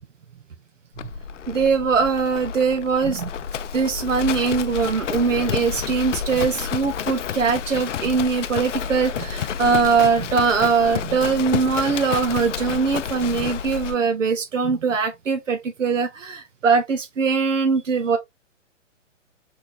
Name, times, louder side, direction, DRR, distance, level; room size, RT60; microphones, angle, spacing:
Livestock farm animals working animals, 0.9-14.0, left 8 dB, 75° left, 0.6 m, -30 dB
voice 1, 1.5-3.3 3.7-18.2, right 5 dB, 80° right, 1.1 m, -21 dB
4.4 x 3.7 x 2.9 m
hypercardioid pair, 135°, 37 cm